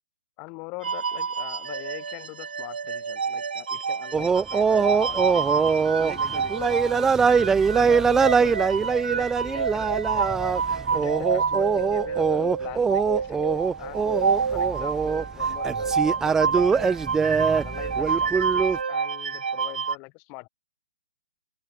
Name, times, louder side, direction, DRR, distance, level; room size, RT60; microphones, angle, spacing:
voice 1, 0.4-5.6 6.0-10.3 10.9-16.9 17.4-20.5, left 32 dB, 30° left, 2.4 m, -43 dB
sound 1, 0.8-19.9, right 6 dB, 75° right, 1.0 m, -28 dB
sound 2, 4.1-18.8, right 5 dB, 10° right, 0.8 m, -23 dB
open air
hypercardioid pair, 135°, 5 cm